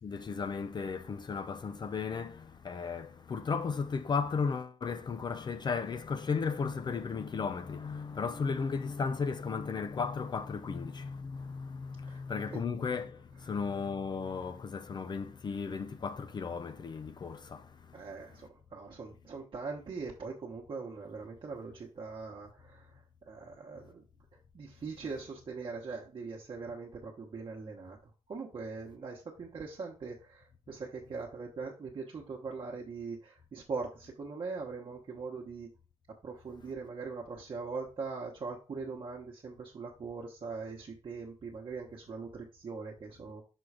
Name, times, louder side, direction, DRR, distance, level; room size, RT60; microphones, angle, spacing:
voice 1, 0.0-18.4, left 5 dB, 40° left, 0.5 m, -35 dB
voice 2, 17.9-22.9 23.3-24.0 24.5-28.0 28.3-35.7 36.2-43.4, right 4 dB, 45° right, 1.1 m, -41 dB
6.2 x 3.8 x 4.8 m
wide cardioid pair, 130°, 12 cm